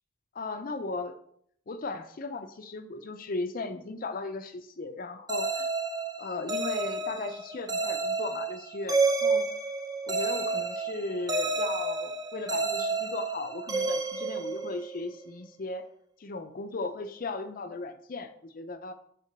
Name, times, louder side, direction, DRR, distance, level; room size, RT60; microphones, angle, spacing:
voice 1, 0.3-1.2 1.7-5.7 6.2-9.5 10.1-15.9 16.2-18.9, left 3 dB, 40° left, 9 dB, 0.4 m, -36 dB
sound 1, 5.3-15.1, right 3 dB, 20° right, 0.5 m, -30 dB
5.9 x 3.7 x 5.8 m, 0.66 s
head